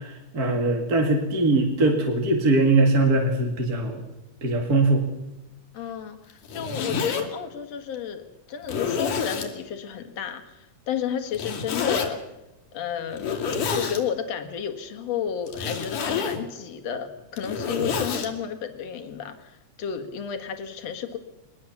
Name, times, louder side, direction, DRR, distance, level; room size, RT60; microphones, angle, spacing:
voice 1, 0.0-4.0 4.4-5.1, right 2 dB, 30° right, 2 dB, 2.3 m, -21 dB
voice 2, 5.7-8.2 8.5-12.2 12.7-13.3 13.7-21.2, left 8 dB, 55° left, 7 dB, 2.8 m, -32 dB
Zipper (clothing), 6.3-7.2 7.9-8.0 8.6-9.5 11.3-12.1 13.1-14.0 15.5-16.4 17.2-18.3, left 6 dB, 80° left, 4.0 m, -28 dB
22.5 x 20.5 x 7.2 m, 0.98 s
omnidirectional pair, 3.6 m